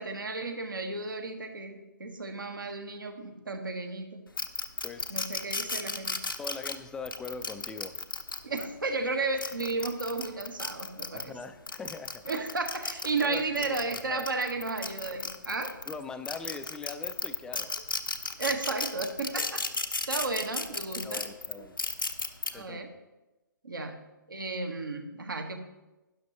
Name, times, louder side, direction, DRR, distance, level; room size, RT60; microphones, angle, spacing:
voice 1, 0.0-4.2 5.1-6.1 8.4-11.3 12.3-15.8 18.4-19.7 20.1-21.2 21.6-21.7 22.5-22.9 23.6-24.0 24.3-25.6, right 3 dB, 70° right, 4 dB, 1.4 m, -33 dB
sound 1, 4.4-8.6 9.2-11.3 11.7-15.9 16.2-22.5, left 3 dB, 80° left, 0.9 m, -34 dB
voice 2, 4.8-5.2 6.4-8.0 11.1-12.3 13.2-13.8 14.1-14.3 15.9-17.7 21.0-21.8 22.5-23.0, left 4 dB, 5° left, 10 dB, 0.4 m, -41 dB
12.0 x 10.5 x 3.0 m, 1.1 s
figure-of-eight pair, 125°, 11 cm